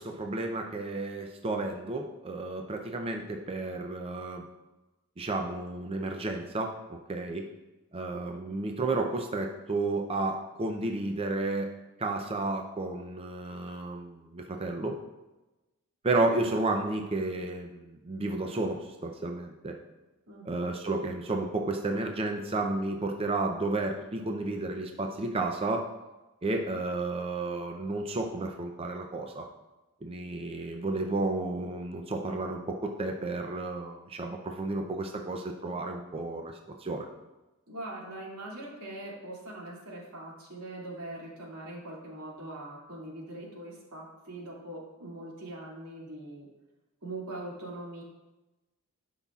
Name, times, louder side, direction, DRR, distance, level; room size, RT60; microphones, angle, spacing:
voice 1, 0.0-4.4 5.2-7.5 7.9-11.7 12.0-15.0 16.0-19.7 20.4-25.9 26.4-29.5 30.0-37.1, right 2 dB, 25° right, 3 dB, 0.5 m, -32 dB
voice 2, 20.3-20.6 37.7-46.5 47.0-48.0, right 1 dB, 90° right, -4 dB, 2.3 m, -42 dB
12.0 x 5.6 x 2.4 m, 1.1 s
head